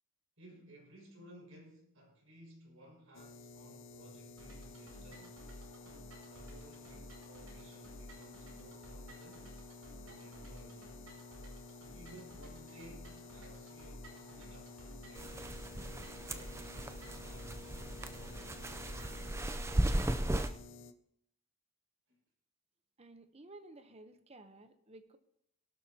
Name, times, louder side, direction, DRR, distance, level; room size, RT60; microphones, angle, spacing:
voice 1, 0.4-5.5 6.3-9.5 10.0-10.9 11.9-17.6 18.1-18.7 22.1-22.2, right 1 dB, 70° right, 5.7 m, -58 dB
sound 1, 3.1-20.9, left 4 dB, 55° left, 0.6 m, -53 dB
sound 2, 4.4-20.2, equal, 85° right, 6.0 m, -53 dB
sound 3, 15.1-20.5, right 1 dB, 10° right, 0.5 m, -36 dB
voice 2, 23.0-25.2, right 2 dB, 30° right, 0.8 m, -54 dB
22.0 x 12.0 x 2.9 m
head